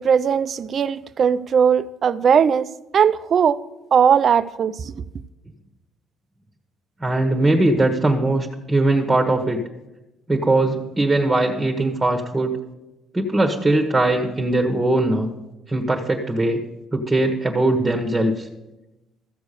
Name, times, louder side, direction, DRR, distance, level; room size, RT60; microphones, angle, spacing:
voice 1, 0.0-2.7 2.9-3.6 3.9-4.9, right 7 dB, 45° right, 0.5 m, -18 dB
voice 2, 7.0-9.6 10.3-12.6 13.1-15.3 15.7-16.6 16.9-18.5, right 2 dB, 15° right, 1.3 m, -20 dB
14.0 x 7.0 x 6.8 m
cardioid pair, 105°, 0 cm